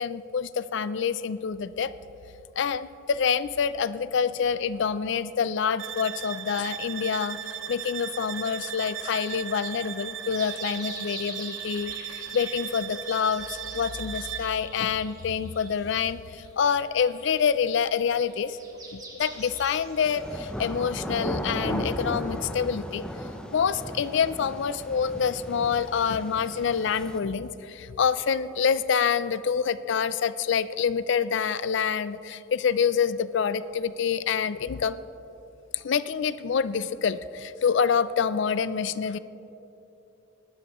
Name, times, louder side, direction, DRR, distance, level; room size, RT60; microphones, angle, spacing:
voice 1, 0.0-1.9 2.6-7.4 7.7-13.5 13.7-18.6 18.9-23.0 23.5-35.0 35.7-39.2, left 6 dB, 60° left, 15 dB, 0.4 m, -27 dB
sound 1, 5.8-14.6, right 9 dB, 65° right, 0.6 m, -37 dB
sound 2, 10.2-20.4, right 2 dB, 15° right, 1.4 m, -45 dB
sound 3, 19.2-27.2, equal, 5° left, 0.6 m, -36 dB
18.5 x 12.0 x 3.0 m, 2.9 s
head